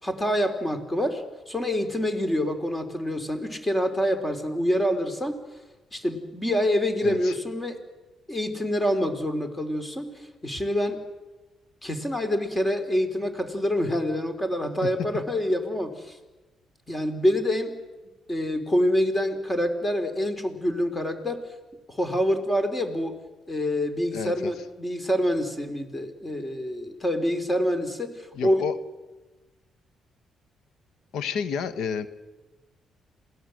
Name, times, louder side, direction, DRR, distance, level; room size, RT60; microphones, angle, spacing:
voice 1, 0.0-5.4 5.9-7.8 8.3-11.0 11.8-16.2 16.9-17.7 18.3-21.4 21.9-23.2 23.5-28.6, equal, 20° left, 7 dB, 3.4 m, -26 dB
voice 2, 7.0-7.3 14.8-14.9 24.1-24.5 28.3-28.8 31.1-32.1, left 6 dB, 80° left, 12 dB, 1.3 m, -30 dB
28.0 x 18.0 x 7.8 m, 1.1 s
cardioid pair, 90°, 0 cm